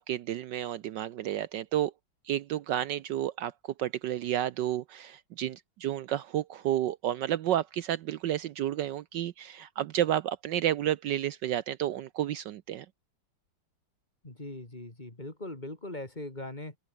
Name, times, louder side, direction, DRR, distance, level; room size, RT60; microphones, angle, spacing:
voice 1, 0.0-1.9 2.2-12.9, right 12 dB, 70° right, 1.3 m, -31 dB
voice 2, 14.2-16.8, left 1 dB, 20° left, 3.4 m, -40 dB
open air
omnidirectional pair, 2.1 m